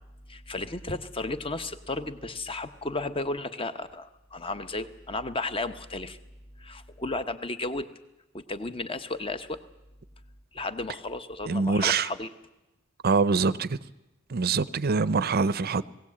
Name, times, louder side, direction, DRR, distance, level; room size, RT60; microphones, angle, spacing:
voice 1, 0.3-6.2 6.6-7.9 8.3-9.6 10.5-12.3, left 2 dB, 25° left, 1.0 m, -33 dB
voice 2, 11.5-12.1 13.0-13.7 14.3-15.8, right 4 dB, 50° right, 0.6 m, -24 dB
19.5 x 17.0 x 8.6 m
head